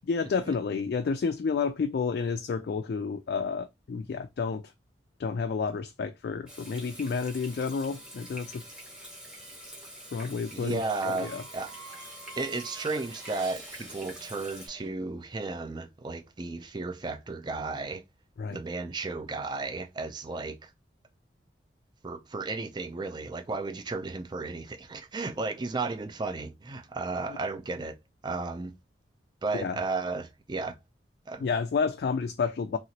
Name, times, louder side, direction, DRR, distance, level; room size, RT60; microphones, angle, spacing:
voice 1, 0.0-4.6 5.2-8.6 10.1-11.4 18.4-18.6 29.5-29.8 31.4-32.8, left 5 dB, 55° left, 0.3 m, -30 dB
Water tap faucet / Sink (filling or washing), 6.5-14.7, equal, 5° right, 1.0 m, -46 dB
sound 1, 7.2-14.9, right 4 dB, 90° right, 1.3 m, -51 dB
voice 2, 10.5-11.7 12.4-18.0 18.5-20.7 22.0-28.0 28.2-28.7 29.4-30.8 31.3-31.5, right 3 dB, 25° right, 0.4 m, -34 dB
2.9 x 2.9 x 2.8 m
head